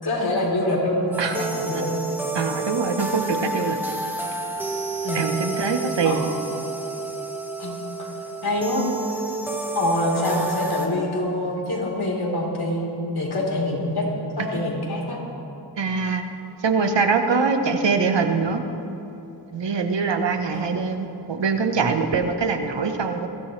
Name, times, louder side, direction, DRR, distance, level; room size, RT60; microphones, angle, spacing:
voice 1, 0.0-1.9 5.0-5.3 6.0-6.4 7.6-7.8 8.4-8.8 9.7-12.9 13.1-14.1 14.4-15.2 20.5-20.7, left 1 dB, 60° left, -3 dB, 4.2 m, -25 dB
sound 1, 1.1-10.9, right 2 dB, 5° right, 1.9 m, -30 dB
voice 2, 2.3-3.8 5.1-6.2 15.8-16.2 16.6-18.6 19.5-23.3, right 5 dB, 75° right, 6 dB, 1.3 m, -23 dB
22.0 x 16.0 x 3.4 m, 3.0 s
wide cardioid pair, 70°, 43 cm